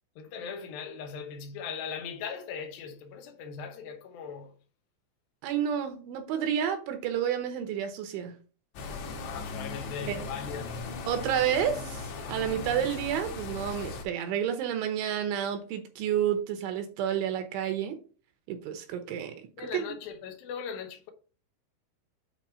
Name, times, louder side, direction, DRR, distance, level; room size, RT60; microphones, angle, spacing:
voice 1, 0.2-4.5 9.3-10.7 19.6-21.1, left 6 dB, 90° left, 2.0 m, -39 dB
voice 2, 5.4-8.3 10.0-10.2 11.1-18.0 18.5-19.3 19.7-19.8, right 9 dB, 75° right, 3.1 m, -30 dB
sound 1, 8.8-14.0, left 4 dB, 75° left, 3.1 m, -38 dB
8.4 x 3.2 x 5.5 m
omnidirectional pair, 5.7 m